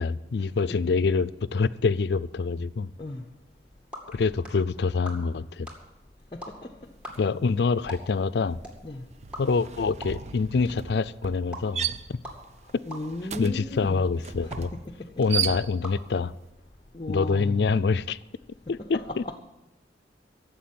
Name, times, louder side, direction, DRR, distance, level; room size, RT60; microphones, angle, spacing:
voice 1, 0.0-2.9 4.1-5.7 7.2-8.6 9.4-12.2 12.7-12.8 13.4-14.7 15.2-16.3 17.1-18.2 18.9-19.2, left 4 dB, 70° left, 0.4 m, -26 dB
sound 1, 3.5-16.8, equal, 5° right, 2.2 m, -47 dB
voice 2, 6.3-6.7 8.8-9.0 12.9-14.1 14.4-15.1 16.9-17.7 18.8-19.4, left 1 dB, 30° left, 0.7 m, -36 dB
sound 2, 7.1-7.4 7.7-16.1, right 8 dB, 40° right, 0.4 m, -36 dB
13.0 x 7.6 x 9.3 m
head